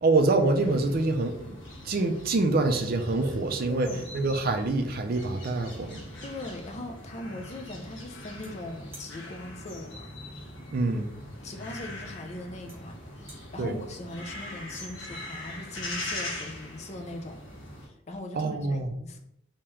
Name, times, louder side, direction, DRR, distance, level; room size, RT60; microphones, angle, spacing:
voice 1, 0.0-1.6 1.8-6.0 10.7-11.1 13.6-13.8 18.3-18.9, right 3 dB, 45° right, 5 dB, 0.4 m, -26 dB
sound 1, 0.6-17.9, left 1 dB, 60° left, 1.1 m, -41 dB
voice 2, 3.7-4.1 6.2-10.1 11.4-17.4 17.9-19.2, left 1 dB, 30° left, 5 dB, 0.4 m, -40 dB
sound 2, 4.6-4.7 5.0-6.4 8.4-8.5 8.9-9.1 11.0-11.1 12.0-12.1 12.7-12.8 13.1-13.4, right 1 dB, 10° right, 0.8 m, -51 dB
3.4 x 2.9 x 3.1 m, 0.77 s
head